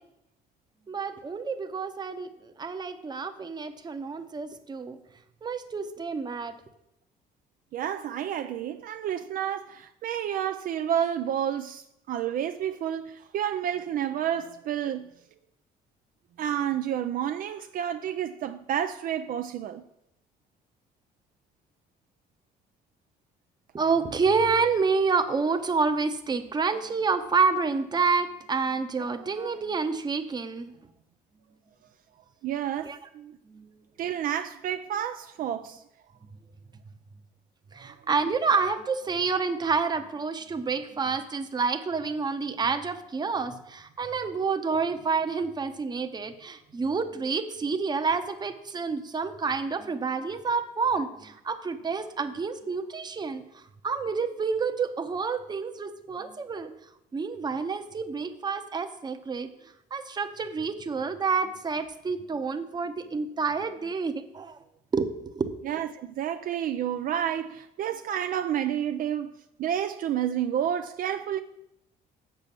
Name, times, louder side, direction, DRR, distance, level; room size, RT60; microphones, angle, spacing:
voice 1, 0.9-5.0 5.4-6.6 23.7-30.7 32.8-33.0 33.5-33.7 37.7-56.7 57.1-59.5 59.9-64.6 64.9-65.6, right 4 dB, 25° right, 0.8 m, -28 dB
voice 2, 7.7-15.1 16.4-19.8 32.4-33.4 34.0-35.8 37.8-37.9 65.6-69.3 69.6-71.4, right 10 dB, 55° right, 0.5 m, -30 dB
8.0 x 6.9 x 6.0 m
cardioid pair, 110°, 17 cm